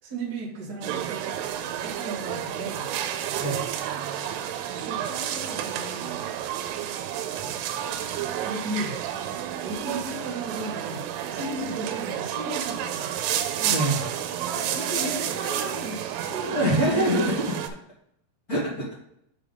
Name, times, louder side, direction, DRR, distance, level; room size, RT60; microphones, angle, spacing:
voice 1, 0.0-1.4 1.8-2.9 4.7-6.2 8.4-9.0 9.3-13.1 13.5-13.9 14.4-16.7, right 1 dB, 70° right, -4 dB, 0.9 m, -36 dB
sound 1, 0.8-17.7, right 10 dB, 90° right, 3.2 m, -30 dB
voice 2, 13.7-14.0 16.4-17.6 18.5-18.9, equal, 40° left, -6 dB, 1.3 m, -24 dB
7.6 x 5.1 x 3.8 m, 0.73 s
omnidirectional pair, 5.7 m